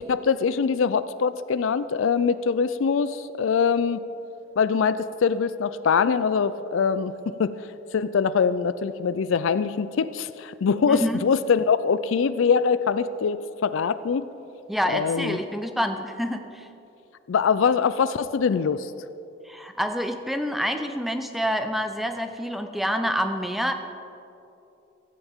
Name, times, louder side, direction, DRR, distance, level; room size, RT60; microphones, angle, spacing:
voice 1, 0.0-4.0 4.6-7.1 7.4-7.5 7.9-14.3 14.9-15.4 17.3-18.9, left 6 dB, 75° left, 14 dB, 0.4 m, -23 dB
voice 2, 10.9-11.2 14.7-16.7 19.5-23.7, equal, ahead, 6 dB, 0.6 m, -27 dB
16.5 x 14.0 x 3.6 m, 2.8 s
head